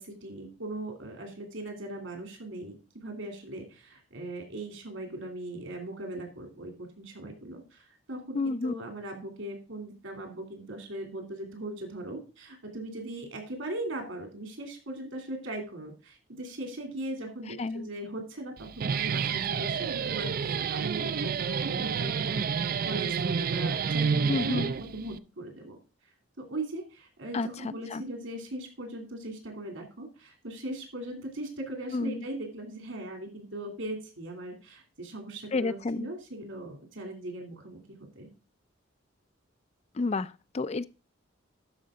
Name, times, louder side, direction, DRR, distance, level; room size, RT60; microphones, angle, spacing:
voice 1, 0.0-2.8 3.0-25.8 26.4-38.3, right 1 dB, 75° right, 2.9 m, -39 dB
voice 2, 8.3-8.7 17.6-17.9 24.3-24.7 27.3-28.0 31.9-32.3 35.5-36.1 39.9-40.8, left 3 dB, 30° left, 0.4 m, -30 dB
Guitar, 18.6-25.2, right 6 dB, 45° right, 0.4 m, -29 dB
12.0 x 5.2 x 3.7 m
head